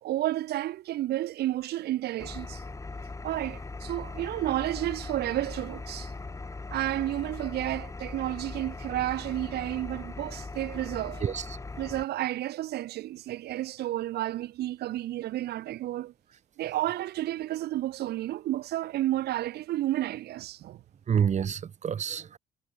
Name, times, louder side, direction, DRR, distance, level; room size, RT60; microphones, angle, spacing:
voice 1, 0.0-2.6 3.2-6.1 6.7-11.2 11.8-16.1 16.6-20.8, right 14 dB, 70° right, 3.4 m, -31 dB
Engine, 2.2-12.0, left 3 dB, 20° left, 6.2 m, -40 dB
voice 2, 11.2-11.6 21.1-22.4, right 8 dB, 45° right, 6.3 m, -28 dB
cardioid pair, 110°, 17 cm